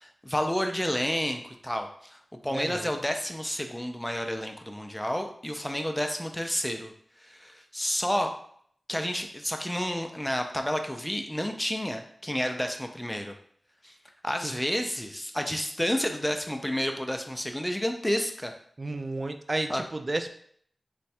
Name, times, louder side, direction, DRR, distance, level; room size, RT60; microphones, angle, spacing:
voice 1, 0.0-2.2 2.4-6.9 7.2-8.3 8.9-13.3 13.8-13.9 14.2-18.5 19.7-19.8, equal, 10° left, 4 dB, 0.5 m, -30 dB
voice 2, 2.5-2.9 18.8-20.3, right 2 dB, 45° right, 7 dB, 0.4 m, -32 dB
3.1 x 2.3 x 4.3 m, 0.62 s
cardioid pair, 45°, 0 cm